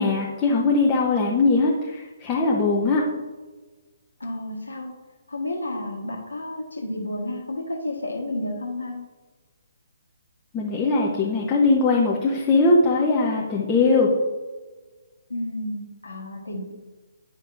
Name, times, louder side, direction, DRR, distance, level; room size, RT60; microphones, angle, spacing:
voice 1, 0.0-3.0 10.5-14.1, left 3 dB, 20° left, -3 dB, 0.8 m, -20 dB
voice 2, 4.2-4.9 5.3-9.0 15.3-16.7, left 1 dB, 75° left, 0 dB, 1.6 m, -31 dB
9.8 x 5.2 x 2.6 m, 1.3 s
figure-of-eight pair, 130°, 0 cm